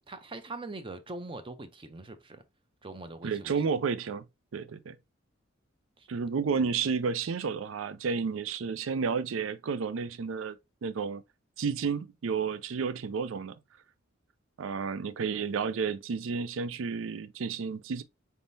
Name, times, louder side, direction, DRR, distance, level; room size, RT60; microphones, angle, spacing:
voice 1, 0.0-2.4 2.8-3.6 6.0-6.1, right 2 dB, 25° right, 0.6 m, -42 dB
voice 2, 3.2-4.2 4.5-5.0 6.1-10.6 10.8-11.2 11.6-13.5 14.6-18.0, right 5 dB, 80° right, 0.4 m, -31 dB
4.1 x 3.6 x 2.6 m
head